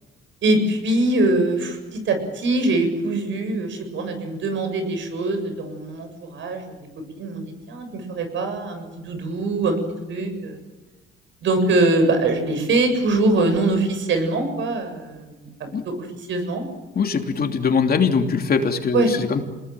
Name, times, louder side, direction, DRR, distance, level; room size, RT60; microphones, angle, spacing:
voice 1, 0.4-6.9 7.2-9.8 10.1-10.6 11.4-15.5 15.8-16.6 18.9-19.1, right 2 dB, 70° right, 7 dB, 7.3 m, -23 dB
voice 2, 16.9-19.4, left 5 dB, 50° left, 5 dB, 3.2 m, -21 dB
28.0 x 20.5 x 7.7 m, 1.2 s
cardioid pair, 90°, 20 cm